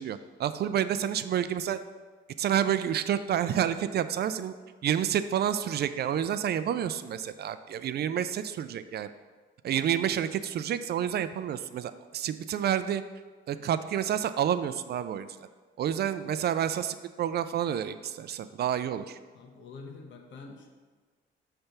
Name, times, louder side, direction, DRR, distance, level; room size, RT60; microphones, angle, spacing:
voice 1, 0.0-1.8 2.4-4.5 4.8-9.1 9.6-13.0 13.5-15.3 15.8-19.2, right 9 dB, 55° right, 12 dB, 0.4 m, -29 dB
voice 2, 19.3-20.7, left 4 dB, 70° left, 2 dB, 1.1 m, -46 dB
6.6 x 3.4 x 5.9 m, 1.4 s
cardioid pair, 90°, 20 cm